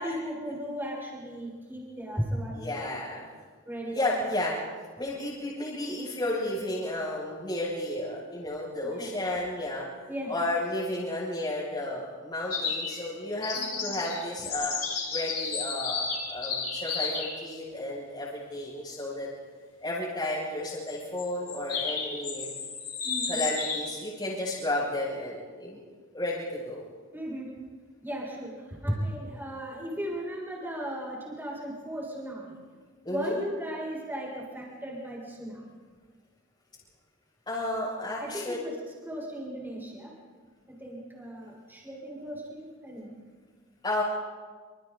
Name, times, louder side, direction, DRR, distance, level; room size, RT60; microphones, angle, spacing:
voice 1, 0.0-2.8 3.6-4.3 8.8-9.1 10.1-10.3 13.5-13.9 23.0-23.3 27.1-27.6 28.0-32.6 33.1-35.7 38.2-38.7 39.0-40.1 40.7-43.1, equal, 10° right, -3 dB, 6.6 m, -36 dB
voice 2, 2.5-3.3 3.9-4.6 5.0-9.8 10.3-14.7 15.1-19.3 19.8-22.5 23.3-25.8 26.1-26.8 33.0-33.4 37.5-38.6 43.8-44.0, left 1 dB, 20° left, -10 dB, 6.7 m, -32 dB
sound 1, 12.5-13.1 13.4-17.4 20.9-24.0, left 5 dB, 45° left, 6.5 m, -32 dB
27.5 x 27.5 x 4.1 m, 1.5 s
head